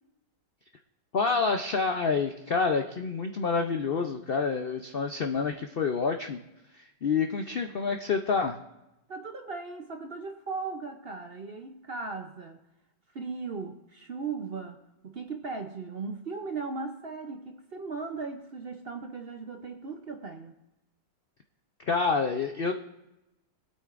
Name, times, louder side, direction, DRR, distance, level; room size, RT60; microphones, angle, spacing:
voice 1, 1.1-6.4 6.8-8.6 21.9-22.7, left 4 dB, 75° left, 5 dB, 0.5 m, -28 dB
voice 2, 9.1-12.6 13.1-20.5, right 4 dB, 50° right, 5 dB, 0.7 m, -37 dB
23.0 x 8.4 x 2.5 m, 0.94 s
omnidirectional pair, 1.9 m